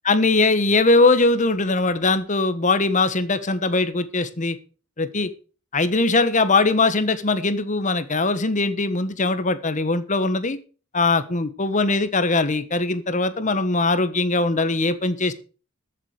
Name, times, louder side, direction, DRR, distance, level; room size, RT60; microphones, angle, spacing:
voice 1, 0.0-4.6 5.0-5.3 5.7-10.6 10.9-15.3, left 3 dB, 40° left, 13 dB, 1.3 m, -21 dB
14.0 x 7.4 x 6.6 m, 0.37 s
head